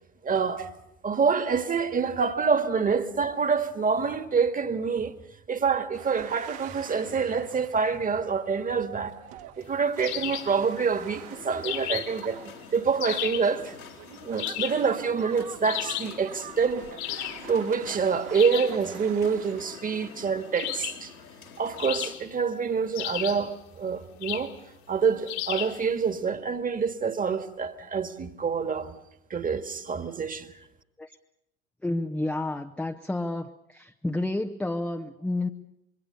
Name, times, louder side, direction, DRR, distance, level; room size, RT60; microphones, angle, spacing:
voice 1, 0.2-0.7 1.0-5.1 5.5-9.1 9.6-13.7 14.2-16.8 17.1-21.1 21.6-24.5 24.9-29.0 29.3-30.5, right 5 dB, 20° right, 1.8 m, -27 dB
sound 1, 5.9-19.7, right 11 dB, 50° right, 1.7 m, -46 dB
sound 2, 10.0-10.6 11.6-12.2 13.0-13.5 14.4-14.9 15.6-16.2 17.0-17.5 18.3-18.8 20.6-21.1 21.8-22.4 22.9-23.5 24.2-24.6 25.3-25.8, left 15 dB, 55° left, 2.1 m, -33 dB
sound 3, 11.0-22.1, left 6 dB, 85° left, 3.4 m, -47 dB
voice 2, 31.8-35.5, left 2 dB, 5° left, 0.8 m, -30 dB
26.0 x 22.5 x 6.7 m
figure-of-eight pair, 75°, 42 cm